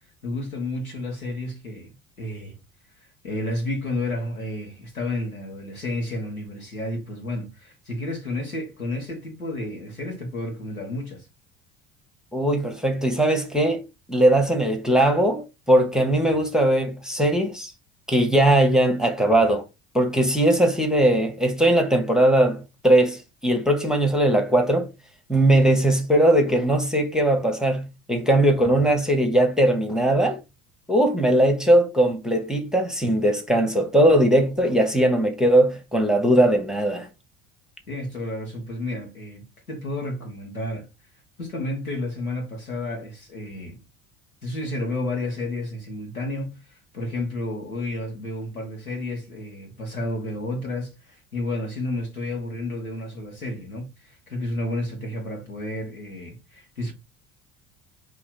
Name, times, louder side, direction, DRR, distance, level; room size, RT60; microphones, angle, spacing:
voice 1, 0.2-1.9 2.2-2.6 3.2-11.3 37.9-40.9 41.4-43.8 44.4-56.9, left 1 dB, 85° left, 1.5 m, -31 dB
voice 2, 12.3-13.8 14.1-17.7 18.1-19.6 19.9-24.9 25.3-30.4 30.9-37.1, right 1 dB, ahead, 1.0 m, -20 dB
4.2 x 2.9 x 4.1 m
figure-of-eight pair, 65°, 42 cm